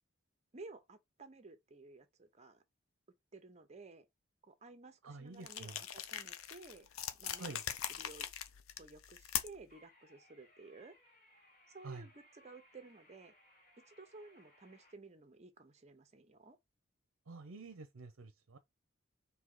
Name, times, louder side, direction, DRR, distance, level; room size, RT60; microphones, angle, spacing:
voice 1, 0.5-2.6 3.3-4.1 4.4-6.9 7.2-7.6 8.0-8.3 8.8-11.0 11.7-13.3 13.8-16.6, right 3 dB, 35° right, 0.8 m, -55 dB
voice 2, 5.0-5.8 7.4-7.6 11.8-12.1 17.3-18.6, right 3 dB, 75° right, 0.6 m, -48 dB
sound 1, 5.4-9.7, left 10 dB, 85° left, 0.6 m, -42 dB
sound 2, 9.7-14.9, left 1 dB, 35° left, 1.5 m, -66 dB
4.6 x 2.8 x 3.7 m
head